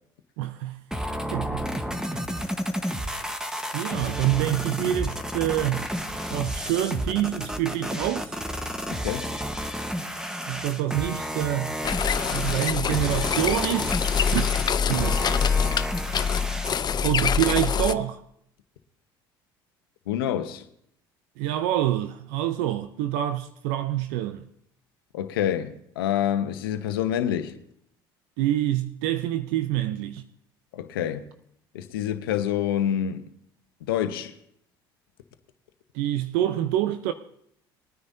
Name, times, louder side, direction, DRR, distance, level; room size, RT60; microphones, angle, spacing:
voice 1, 0.4-0.8 1.3-2.2 3.7-5.9 6.3-8.4 10.4-11.8 12.3-13.9 14.3-14.5 14.9-15.2 17.0-18.2 21.4-24.4 28.4-30.2 35.9-37.1, right 13 dB, 75° right, 0.6 m, -26 dB
sound 1, 0.9-16.9, equal, 5° right, 1.2 m, -31 dB
voice 2, 8.9-9.3 20.1-20.6 25.1-27.5 30.7-31.2 31.7-33.2 33.8-34.3, left 10 dB, 85° left, 0.9 m, -27 dB
sound 2, 11.8-17.9, left 6 dB, 35° left, 0.6 m, -25 dB
20.5 x 9.6 x 2.7 m
hypercardioid pair, 70°, 12 cm